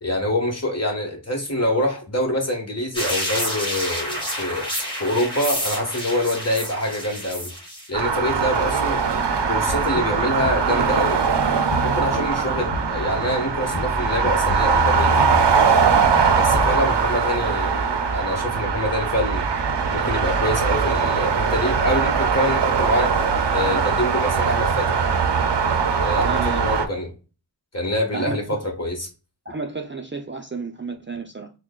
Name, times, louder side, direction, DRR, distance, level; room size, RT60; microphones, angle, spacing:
voice 1, 0.0-4.7 5.0-7.5 7.9-9.0 9.4-11.2 11.8-15.1 16.3-19.5 19.9-23.1 23.5-24.9 26.0-27.1 27.7-29.1, left 1 dB, 40° left, 1.2 m, -25 dB
sound 1, 2.9-7.9, equal, 10° left, 1.8 m, -29 dB
sound 2, 7.9-26.9, right 6 dB, 90° right, 0.5 m, -21 dB
sound 3, 8.7-16.8, left 1 dB, 65° left, 0.9 m, -30 dB
voice 2, 26.2-26.6 28.1-28.7 29.5-31.5, right 4 dB, 30° right, 0.4 m, -31 dB
6.0 x 2.2 x 2.2 m
wide cardioid pair, 55°, 41 cm